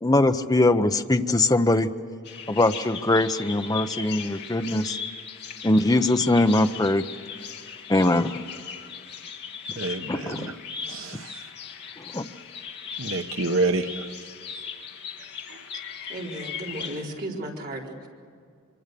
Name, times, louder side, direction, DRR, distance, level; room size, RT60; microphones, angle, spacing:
voice 1, 0.0-1.9 2.5-5.0 5.6-7.0 7.9-8.4 10.1-10.5 12.0-12.2, left 2 dB, 15° left, 8 dB, 0.8 m, -22 dB
Bird vocalization bird call bird song, 2.2-17.0, left 6 dB, 50° left, 2.1 m, -38 dB
voice 2, 9.8-10.5 10.9-11.3 13.0-13.9, right 2 dB, 70° right, 6 dB, 1.2 m, -27 dB
voice 3, 16.1-18.1, right 1 dB, 45° right, -2 dB, 4.4 m, -35 dB
25.5 x 25.0 x 6.9 m, 2.2 s
head